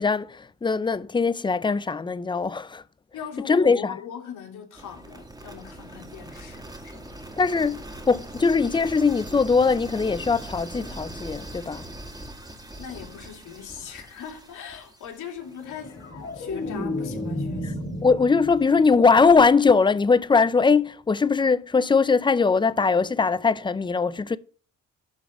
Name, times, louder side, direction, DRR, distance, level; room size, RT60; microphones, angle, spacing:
voice 1, 0.0-2.8 3.5-3.9 7.4-11.8 17.6-17.7 18.0-24.4, left 4 dB, 15° left, 0.5 m, -21 dB
voice 2, 3.1-7.2 12.8-16.0 16.3-17.8, left 8 dB, 80° left, 2.5 m, -40 dB
sound 1, 4.7-16.7, right 1 dB, 10° right, 2.0 m, -41 dB
sound 2, 15.6-18.8 19.2-19.5, left 1 dB, 50° left, 3.1 m, -32 dB
11.5 x 4.0 x 5.9 m
cardioid pair, 90°, 30 cm